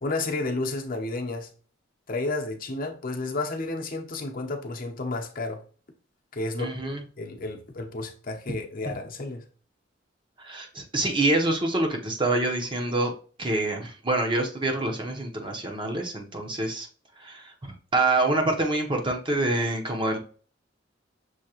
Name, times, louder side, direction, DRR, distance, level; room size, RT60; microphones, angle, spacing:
voice 1, 0.0-1.5 2.1-5.6 6.3-9.4, left 2 dB, 50° left, 0.8 m, -31 dB
voice 2, 6.6-7.0 10.4-13.1 13.4-16.9 17.2-20.2, right 2 dB, 25° right, 0.8 m, -26 dB
6.3 x 2.8 x 2.9 m
head